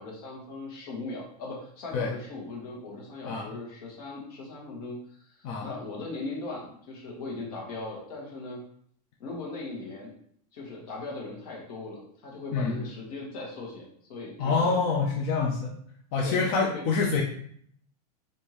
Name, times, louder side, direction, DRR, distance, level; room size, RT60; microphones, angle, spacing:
voice 1, 0.0-8.6 9.2-10.1 10.5-14.8 16.2-16.8, left 3 dB, 70° left, -2 dB, 1.3 m, -39 dB
voice 2, 14.4-15.7 16.1-17.2, left 4 dB, 40° left, -2 dB, 0.5 m, -26 dB
3.4 x 2.6 x 3.0 m, 0.64 s
supercardioid pair, 145°, 20 cm